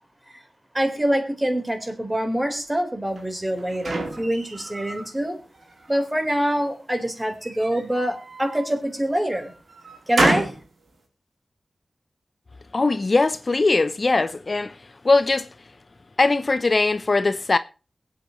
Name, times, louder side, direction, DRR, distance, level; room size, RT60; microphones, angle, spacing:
voice 1, 0.7-5.4 5.9-9.5 10.1-10.5, equal, 20° right, 4.2 m, -25 dB
sound 1, 3.2-5.1 5.5-6.3 7.3-8.7 9.3-10.6, right 2 dB, 80° right, 3.6 m, -29 dB
voice 2, 12.7-14.7 15.0-15.5 16.2-17.6, left 3 dB, 50° left, 0.7 m, -20 dB
22.0 x 8.8 x 3.1 m
cardioid pair, 55°, 0 cm